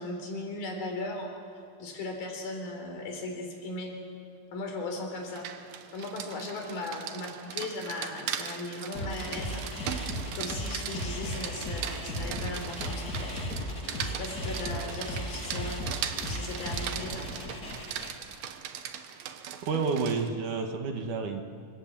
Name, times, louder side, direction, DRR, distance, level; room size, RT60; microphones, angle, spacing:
voice 1, 0.0-4.0 4.5-5.5 5.9-10.1 10.3-13.3 13.9-17.3, left 2 dB, 75° left, 2 dB, 5.7 m, -37 dB
Rain, 5.2-20.3, right 9 dB, 75° right, 3.0 m, -39 dB
sound 1, 8.9-18.1, left 1 dB, 25° left, 3.0 m, -36 dB
voice 2, 19.6-21.4, right 4 dB, 60° right, 4 dB, 2.9 m, -30 dB
27.0 x 25.5 x 7.6 m, 2.3 s
omnidirectional pair, 4.2 m